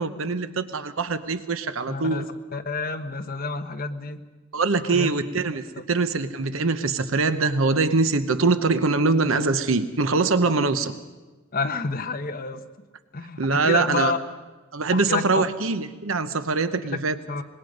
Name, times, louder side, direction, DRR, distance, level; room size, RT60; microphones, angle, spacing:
voice 1, 0.0-2.3 4.5-10.9 13.4-14.1 14.7-17.2, right 3 dB, 70° right, 11 dB, 0.9 m, -23 dB
voice 2, 1.9-2.2 2.5-4.2 4.8-5.1 11.5-12.6 13.1-14.2 14.9-15.4 17.3-17.4, left 4 dB, 45° left, 5 dB, 1.2 m, -29 dB
25.5 x 21.0 x 5.3 m, 1.3 s
head